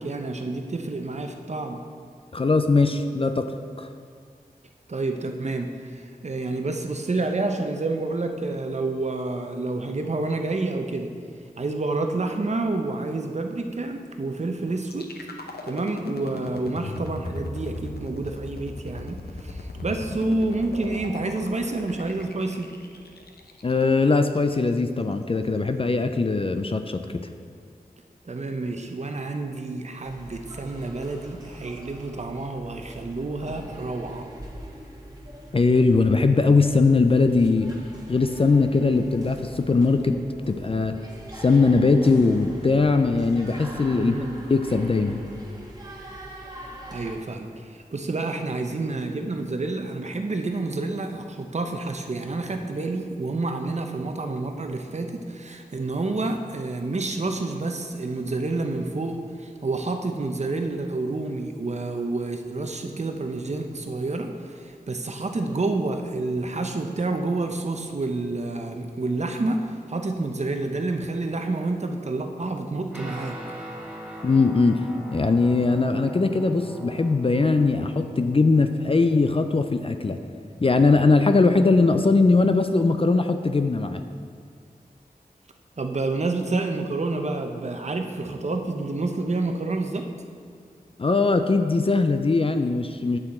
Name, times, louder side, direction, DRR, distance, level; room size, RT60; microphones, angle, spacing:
voice 1, 0.0-1.8 4.9-11.1 11.6-15.1 15.6-22.7 28.2-34.3 43.9-44.4 46.9-69.6 69.9-73.4 85.8-90.1, right 2 dB, 45° right, 5 dB, 0.7 m, -29 dB
voice 2, 2.3-3.9 23.6-27.3 35.5-37.7 38.1-40.2 40.5-41.0 41.4-44.1 44.5-45.2 74.2-74.8 75.1-80.2 80.6-84.0 91.0-93.2, left 3 dB, 35° left, 7 dB, 0.4 m, -20 dB
sound 1, 14.8-24.8, left 2 dB, 80° left, 0.7 m, -37 dB
sound 2, 30.0-47.1, right 1 dB, 25° right, 1.5 m, -43 dB
Guitar, 72.9-82.5, equal, 5° right, 1.2 m, -42 dB
8.7 x 6.4 x 4.2 m, 2.1 s
wide cardioid pair, 65°, 16 cm